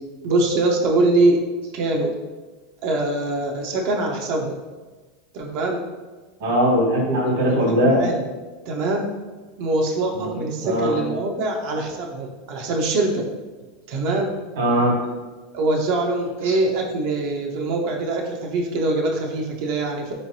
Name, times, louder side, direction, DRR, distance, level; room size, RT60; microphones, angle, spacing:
voice 1, 0.2-1.4 1.7-2.1 2.8-4.5 5.3-5.8 7.4-8.2 8.7-9.1 9.6-13.2 13.9-14.3 15.5-20.1, right 2 dB, 60° right, 0 dB, 0.5 m, -23 dB
voice 2, 6.4-8.0 10.1-10.3 10.6-10.9 14.6-14.9 16.4-16.6, equal, 75° right, -3 dB, 1.4 m, -20 dB
3.6 x 3.1 x 2.7 m, 1.3 s
supercardioid pair, 120°, 0 cm